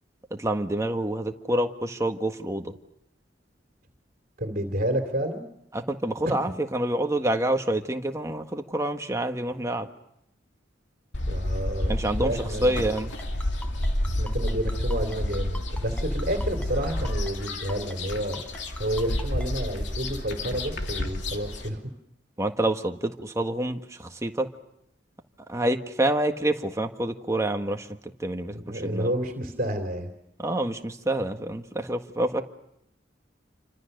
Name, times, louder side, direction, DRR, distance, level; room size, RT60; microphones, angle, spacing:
voice 1, 0.3-2.7 5.7-9.9 11.9-13.1 22.4-24.5 25.5-27.9 28.2-29.1 30.4-32.4, right 1 dB, 15° right, 5 dB, 1.6 m, -27 dB
voice 2, 4.4-5.4 6.3-6.4 11.3-12.9 14.2-18.4 18.8-21.8 28.5-30.1, right 1 dB, 50° right, 5 dB, 3.0 m, -30 dB
sound 1, 11.1-21.7, left 1 dB, 70° left, 2.7 m, -30 dB
Ringtone, 12.8-19.5, left 1 dB, 5° left, 3.8 m, -41 dB
29.0 x 25.5 x 6.7 m, 0.81 s
head